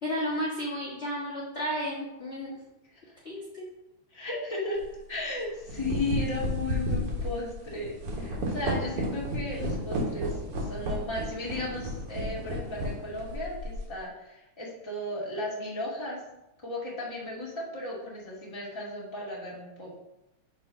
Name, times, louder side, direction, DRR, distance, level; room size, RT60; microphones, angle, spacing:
voice 1, 0.0-2.5 3.2-3.6, equal, 40° left, -7 dB, 1.0 m, -32 dB
voice 2, 4.1-4.8 5.1-10.3 10.6-16.2 16.6-20.0, left 2 dB, 10° left, -5 dB, 1.4 m, -35 dB
sound 1, 4.8-5.0 5.5-13.9, equal, 55° right, 2.1 m, -32 dB
6.1 x 4.4 x 5.5 m, 0.90 s
omnidirectional pair, 3.5 m